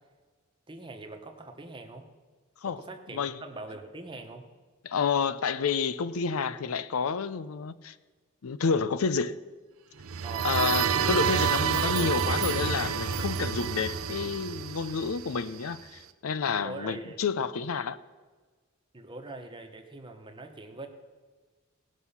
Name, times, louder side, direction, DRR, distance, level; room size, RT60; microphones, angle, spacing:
voice 1, 0.7-2.1 2.6-4.5 10.2-10.6 16.6-17.2 18.9-20.9, right 2 dB, 25° right, 1.1 m, -43 dB
voice 2, 4.8-7.9 8.4-9.3 10.4-18.0, left 5 dB, 85° left, 0.5 m, -29 dB
sound 1, 10.0-15.7, right 7 dB, 75° right, 0.7 m, -29 dB
17.5 x 6.2 x 5.6 m
head